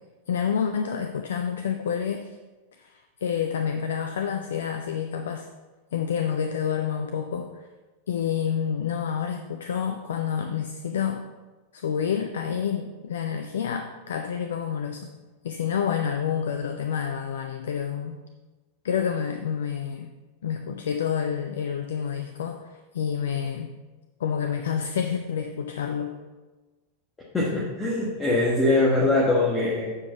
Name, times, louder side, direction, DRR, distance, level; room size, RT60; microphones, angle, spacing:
voice 1, 0.3-2.4 2.8-5.5 5.9-7.5 8.1-11.3 11.7-15.1 15.4-18.2 18.8-20.1 20.4-23.7 24.2-26.2, left 7 dB, 65° left, 6 dB, 0.5 m, -28 dB
voice 2, 27.3-29.9, left 2 dB, 15° left, -5 dB, 1.4 m, -22 dB
7.6 x 4.8 x 5.6 m, 1.2 s
figure-of-eight pair, 90°, 0 cm